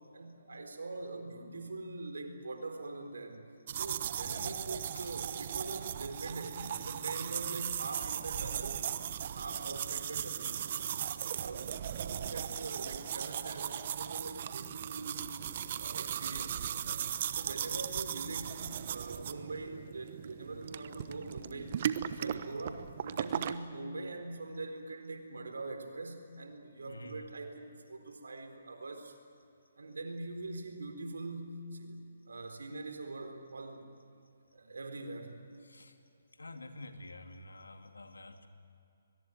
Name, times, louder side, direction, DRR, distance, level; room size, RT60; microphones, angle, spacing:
voice 1, 0.1-3.4 3.8-8.9 9.2-11.0 11.4-15.4 15.7-29.1 29.8-33.9 34.5-35.4, right 2 dB, 80° right, 6 dB, 4.1 m, -43 dB
sound 1, 3.7-23.5, right 9 dB, 45° right, 1.1 m, -37 dB
voice 2, 4.2-4.6 4.9-5.1 26.9-27.3 35.6-36.0 36.4-38.5, left 1 dB, 90° left, 6 dB, 2.5 m, -48 dB
sound 2, 21.0-21.6 23.0-23.7, left 3 dB, 20° left, 4.8 m, -66 dB
23.0 x 22.0 x 9.4 m, 2.6 s
hypercardioid pair, 145°, 0 cm